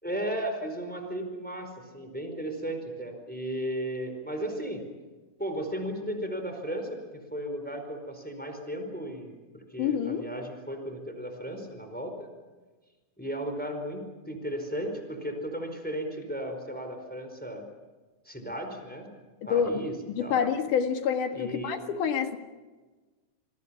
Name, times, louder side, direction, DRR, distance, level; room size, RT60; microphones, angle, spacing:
voice 1, 0.0-4.8 5.4-12.3 13.2-17.7 18.2-19.1 19.5-19.9 20.2-20.4 21.3-21.8, right 1 dB, 5° left, 4 dB, 4.4 m, -35 dB
voice 2, 9.8-10.3 19.4-19.8 20.1-22.4, left 7 dB, 85° left, 6 dB, 3.3 m, -27 dB
28.5 x 21.5 x 5.9 m, 1.3 s
omnidirectional pair, 3.5 m